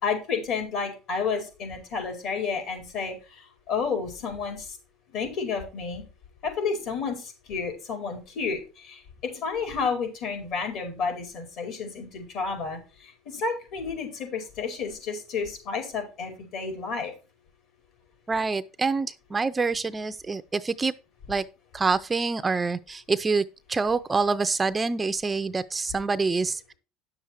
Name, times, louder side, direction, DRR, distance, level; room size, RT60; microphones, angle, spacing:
voice 1, 0.0-3.2 3.7-4.8 5.1-6.0 6.4-17.1, left 5 dB, 60° left, 5.1 m, -31 dB
voice 2, 18.3-20.9 21.3-21.4 21.7-26.7, right 4 dB, 15° right, 0.5 m, -26 dB
10.0 x 7.1 x 4.7 m
cardioid pair, 125°, 0 cm